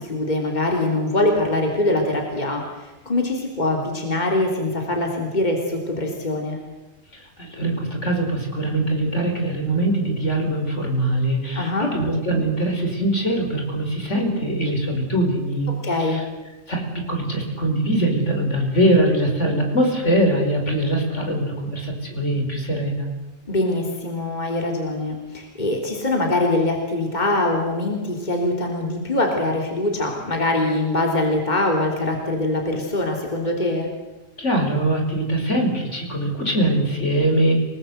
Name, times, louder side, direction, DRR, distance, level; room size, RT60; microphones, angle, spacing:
voice 1, 0.0-6.6 11.5-11.9 15.7-16.3 23.5-33.9, left 2 dB, 35° left, 1 dB, 3.6 m, -23 dB
voice 2, 7.1-15.7 16.0-16.2 16.7-23.1 34.4-37.5, right 1 dB, 65° left, 2 dB, 5.4 m, -22 dB
29.5 x 20.0 x 8.1 m, 1.1 s
omnidirectional pair, 1.3 m